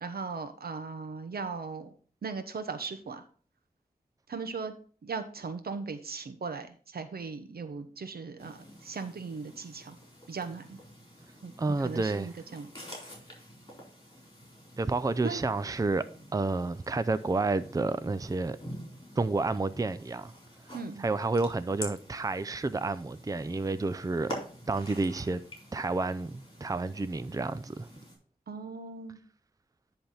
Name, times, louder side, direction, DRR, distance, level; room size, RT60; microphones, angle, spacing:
voice 1, 0.0-1.9 2.2-3.2 4.3-4.7 5.0-6.7 6.9-8.6 8.8-10.0 10.3-10.8 11.4-12.7 15.2-15.4 20.7-21.0 28.5-29.2, right 4 dB, 85° right, 1.0 m, -38 dB
sound 1, 8.4-28.1, equal, 30° left, 3.9 m, -48 dB
voice 2, 11.6-12.3 14.8-16.1 16.3-18.6 19.2-20.3 21.0-24.3 24.7-25.4 25.7-27.9, right 3 dB, 20° right, 0.4 m, -30 dB
10.5 x 3.5 x 5.6 m
wide cardioid pair, 65°, 16 cm